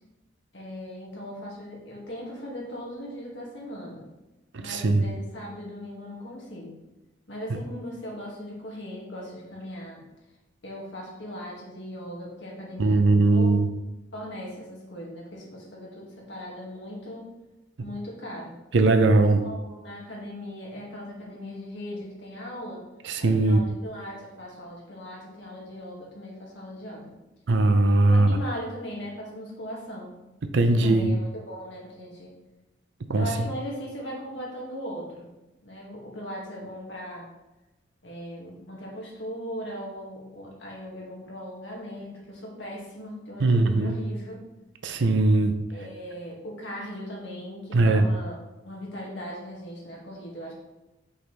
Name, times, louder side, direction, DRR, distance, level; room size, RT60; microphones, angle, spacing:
voice 1, 0.5-4.1 4.6-6.8 7.3-10.0 10.6-13.6 14.1-17.3 17.8-18.5 19.2-22.9 23.2-27.1 28.0-30.1 30.7-32.3 33.2-35.3 35.6-37.3 38.0-44.4 45.7-48.4 48.6-50.5, equal, 70° left, -3 dB, 2.0 m, -38 dB
voice 2, 4.5-5.0 12.8-13.7 18.7-19.4 23.0-23.6 27.5-28.4 30.5-31.1 33.1-33.3 43.4-44.0 44.8-45.6 47.7-48.1, right 2 dB, 65° right, 7 dB, 0.6 m, -20 dB
5.9 x 5.5 x 3.3 m, 1.0 s
head